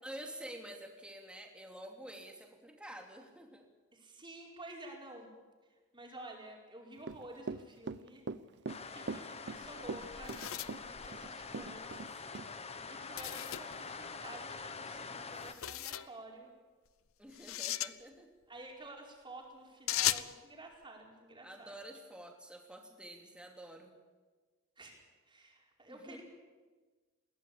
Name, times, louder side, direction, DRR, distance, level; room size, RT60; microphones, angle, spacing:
voice 1, 0.0-3.6 17.2-18.3 21.4-23.9 25.9-26.2, right 1 dB, 5° right, 2 dB, 2.9 m, -49 dB
voice 2, 3.9-5.3 5.9-8.2 8.8-12.2 12.7-16.5 18.5-21.7 24.8-24.9 25.3-26.2, right 1 dB, 20° right, 0 dB, 4.8 m, -51 dB
Run / Walk footsteps, 7.0-12.1 12.4-12.5, right 3 dB, 55° right, 0.7 m, -41 dB
sound 1, 8.7-15.5, left 4 dB, 30° left, 1.2 m, -45 dB
sound 2, 9.5-11.8 13.2-13.8 15.4-16.1 17.3-17.9 19.9-20.3, left 13 dB, 70° left, 0.7 m, -37 dB
21.5 x 17.5 x 8.6 m, 1.3 s
head